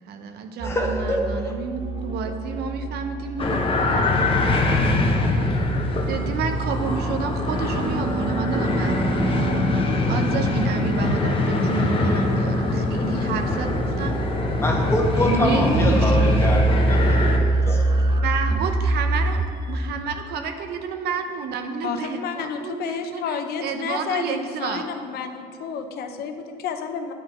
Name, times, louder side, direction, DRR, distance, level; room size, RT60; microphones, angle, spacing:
voice 1, 0.1-4.5 6.1-14.2 15.3-16.4 18.2-19.4 19.7-24.9, right 5 dB, 70° right, 6 dB, 0.7 m, -30 dB
voice 2, 0.6-1.5 12.7-13.0 14.6-18.1, left 1 dB, 15° left, 0 dB, 1.1 m, -26 dB
sound 1, 0.6-20.0, right 2 dB, 25° right, 0.4 m, -26 dB
sound 2, 3.4-17.4, left 2 dB, 30° left, 0.8 m, -23 dB
voice 3, 21.8-27.1, left 6 dB, 70° left, 6 dB, 0.7 m, -30 dB
9.9 x 4.1 x 4.3 m, 2.2 s
cardioid pair, 110°, 17 cm